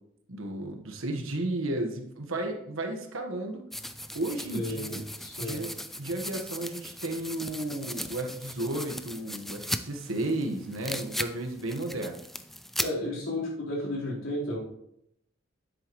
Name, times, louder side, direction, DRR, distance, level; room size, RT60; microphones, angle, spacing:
voice 1, 0.3-3.7 4.1-5.0 5.4-5.7 6.0-12.2, right 1 dB, 85° right, 4 dB, 1.4 m, -33 dB
sound 1, 3.7-12.9, equal, ahead, 0.3 m, -38 dB
voice 2, 4.5-5.6 12.8-14.6, left 1 dB, 70° left, -6 dB, 4.1 m, -33 dB
10.0 x 7.9 x 3.1 m, 0.76 s
head